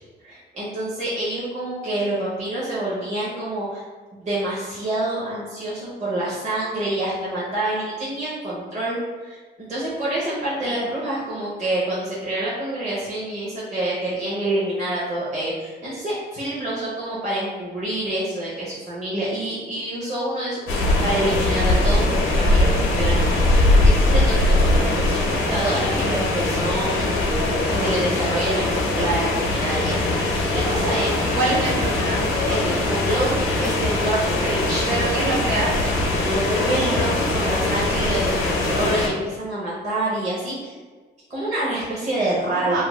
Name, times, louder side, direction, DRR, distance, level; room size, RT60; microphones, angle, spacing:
voice 1, 0.2-3.8 4.1-9.4 9.7-27.1 27.5-31.1 32.5-34.9 35.2-35.3 36.2-40.7 41.3-42.8, right 1 dB, 35° right, -9 dB, 0.9 m, -27 dB
sound 1, 20.7-39.1, left 2 dB, 90° left, 0.6 m, -21 dB
voice 2, 31.3-32.2 34.9-36.0 42.4-42.8, right 2 dB, 90° right, -6 dB, 0.6 m, -25 dB
2.5 x 2.2 x 3.1 m, 1.4 s
cardioid pair, 90°, 20 cm